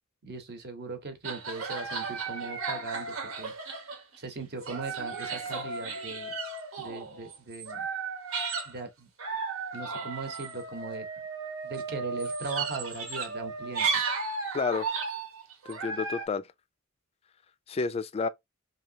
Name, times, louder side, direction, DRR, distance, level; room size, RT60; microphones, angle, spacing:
voice 1, 0.2-3.5 4.2-6.3 6.8-7.9 8.6-9.1 9.7-11.0 11.6-13.9, right 3 dB, 50° right, 0.9 m, -39 dB
sound 1, 1.2-4.2 4.6-8.7 9.2-16.3, right 4 dB, 85° right, 1.1 m, -34 dB
voice 2, 14.5-15.0 15.7-16.5 17.7-18.3, left 4 dB, 30° left, 0.3 m, -30 dB
3.0 x 2.7 x 2.6 m
head